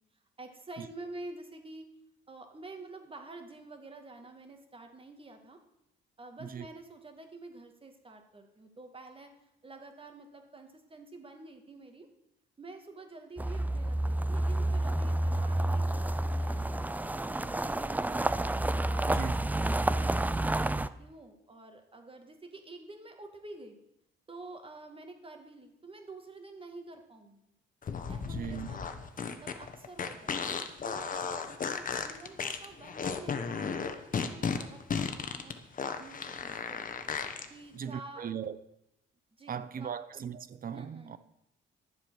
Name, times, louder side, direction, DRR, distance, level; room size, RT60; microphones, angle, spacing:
voice 1, 0.0-1.9 2.3-5.6 6.2-9.3 9.6-12.1 12.6-18.1 18.8-19.5 19.9-23.8 24.3-27.5 28.1-28.9 29.2-30.3 30.9-35.5 35.9-37.1 37.5-38.2 39.3-40.0 40.7-41.2, right 2 dB, 25° right, 2.2 m, -49 dB
sound 1, 13.4-20.9, right 1 dB, 10° right, 0.5 m, -29 dB
sound 2, 27.8-37.5, left 6 dB, 45° left, 1.2 m, -35 dB
voice 2, 28.3-28.7 37.7-38.6 39.5-41.2, right 8 dB, 45° right, 0.8 m, -38 dB
11.5 x 7.5 x 6.4 m
cardioid pair, 90°, 20 cm